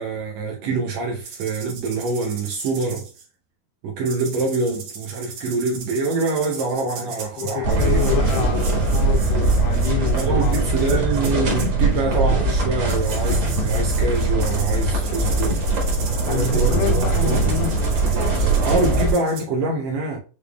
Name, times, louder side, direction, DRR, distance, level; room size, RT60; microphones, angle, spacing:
voice 1, 0.0-3.1 3.8-8.5 10.1-15.6 16.3-17.5 18.3-20.2, right 3 dB, 80° right, 1.5 m, -25 dB
sound 1, 1.2-3.2 4.1-11.7 12.9-19.4, right 5 dB, 60° right, 1.9 m, -37 dB
voice 2, 7.0-11.0 16.2-17.8, left 11 dB, 85° left, 2.6 m, -28 dB
sound 2, 7.6-19.1, right 2 dB, 45° right, 1.9 m, -21 dB
6.6 x 3.4 x 2.3 m
omnidirectional pair, 4.2 m